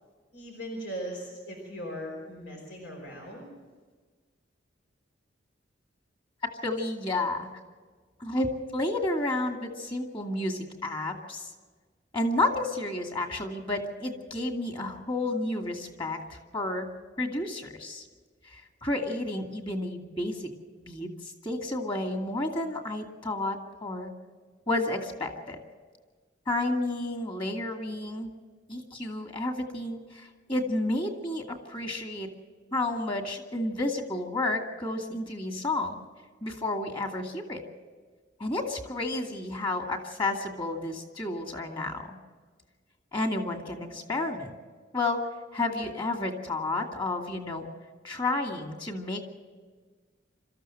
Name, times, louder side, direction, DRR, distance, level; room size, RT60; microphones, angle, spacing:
voice 1, 0.3-3.5, equal, 80° left, 1 dB, 4.8 m, -39 dB
voice 2, 6.6-7.5 8.2-11.5 12.1-16.9 17.2-18.0 18.5-20.5 20.8-24.1 24.7-25.6 26.5-28.3 28.7-32.3 32.7-36.0 36.4-37.6 38.4-42.2 43.1-44.6 44.9-45.3 45.5-47.7 48.0-49.2, left 2 dB, 25° left, 3 dB, 2.3 m, -31 dB
26.0 x 13.5 x 7.8 m, 1.5 s
head